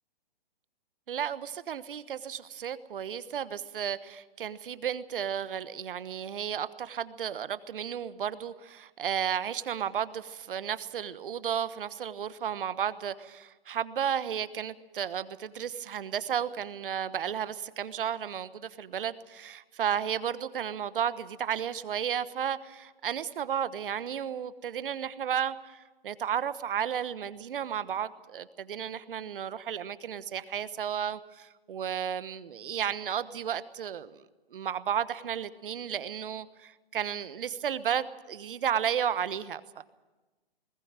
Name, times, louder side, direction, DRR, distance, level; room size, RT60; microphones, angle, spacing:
voice 1, 1.1-34.2 34.5-39.8, right 9 dB, 65° right, 14 dB, 1.2 m, -33 dB
20.5 x 17.0 x 8.9 m, 1.2 s
hypercardioid pair, 145°, 29 cm